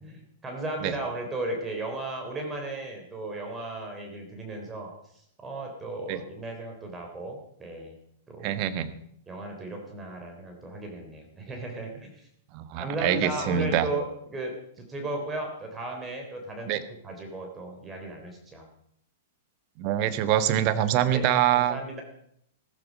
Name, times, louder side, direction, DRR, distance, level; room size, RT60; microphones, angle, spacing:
voice 1, 0.0-5.0 5.4-7.9 8.3-8.6 9.3-12.3 12.8-14.5 14.9-16.7 17.0-18.7 21.1-22.0, right 2 dB, 15° right, 2 dB, 3.5 m, -35 dB
voice 2, 8.4-8.9 12.5-13.9 16.7-16.8 19.8-21.8, right 11 dB, 40° right, 12 dB, 1.4 m, -25 dB
14.5 x 14.5 x 5.3 m, 0.70 s
figure-of-eight pair, 105°, 0 cm